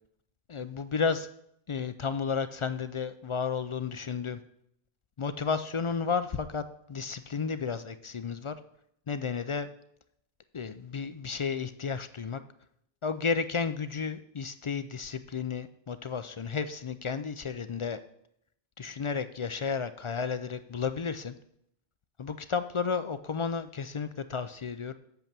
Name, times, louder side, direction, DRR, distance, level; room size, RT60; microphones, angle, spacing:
voice 1, 0.5-1.3 1.7-4.4 5.2-8.6 9.1-9.7 10.5-12.4 13.0-18.0 18.8-21.3 22.2-24.9, left 5 dB, 50° left, 11 dB, 0.3 m, -32 dB
8.1 x 6.8 x 7.4 m, 0.74 s
omnidirectional pair, 1.1 m